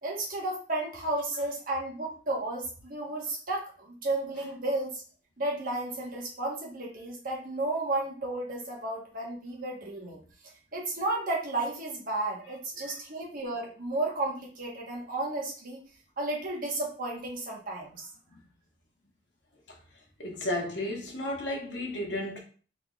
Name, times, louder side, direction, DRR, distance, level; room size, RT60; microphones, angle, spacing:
voice 1, 0.0-5.0 5.4-10.2 10.7-15.8 16.2-18.1, right 2 dB, 50° right, -2 dB, 1.3 m, -33 dB
voice 2, 20.2-22.4, left 1 dB, 80° left, 0 dB, 1.2 m, -33 dB
4.3 x 3.7 x 2.4 m, 0.40 s
head